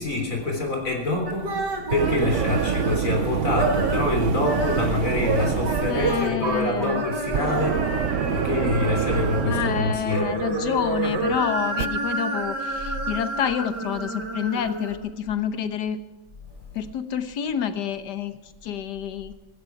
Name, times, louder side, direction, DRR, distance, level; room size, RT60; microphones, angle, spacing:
voice 1, 0.0-1.5 1.9-10.3 16.6-16.7, left 2 dB, 50° left, 1 dB, 4.0 m, -26 dB
sound 1, 1.3-3.1 3.5-4.1 4.4-9.6 9.9-15.0, right 3 dB, 80° right, 3.2 m, -29 dB
sound 2, 1.5-11.9, right 9 dB, 60° right, 0.8 m, -27 dB
voice 2, 5.9-7.1 9.4-16.0 16.7-18.4 18.6-19.3, left 8 dB, 75° left, 10 dB, 1.7 m, -28 dB
17.5 x 15.0 x 4.7 m, 1.1 s
omnidirectional pair, 1.8 m